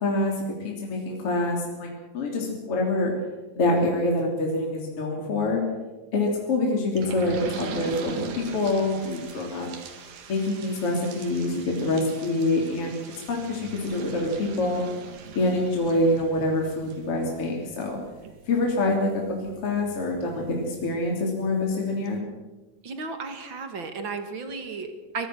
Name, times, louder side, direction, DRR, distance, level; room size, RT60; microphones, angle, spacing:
voice 1, 0.0-3.2 3.6-5.7 6.1-9.7 10.3-13.0 13.3-14.8 15.3-18.0 18.5-22.3, left 2 dB, 45° left, -1 dB, 4.0 m, -26 dB
sound 1, 7.0-21.3 21.7-21.8 22.1-22.2, right 5 dB, 80° right, 3.8 m, -41 dB
voice 2, 22.8-25.3, right 4 dB, 40° right, 6 dB, 2.6 m, -34 dB
23.5 x 20.5 x 6.3 m, 1.2 s
omnidirectional pair, 3.8 m